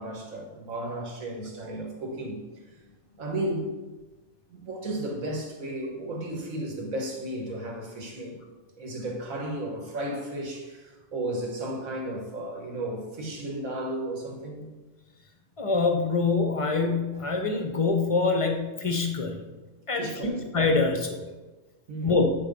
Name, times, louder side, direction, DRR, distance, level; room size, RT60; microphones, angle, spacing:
voice 1, 0.0-2.4 3.2-3.7 4.5-8.4 8.8-14.7 19.9-20.5 21.9-22.2, right 1 dB, 70° right, 1.8 m, -34 dB
voice 2, 15.6-19.4 19.9-21.2 22.0-22.3, left 3 dB, 35° left, 0.5 m, -25 dB
8.2 x 3.9 x 5.2 m
omnidirectional pair, 1.5 m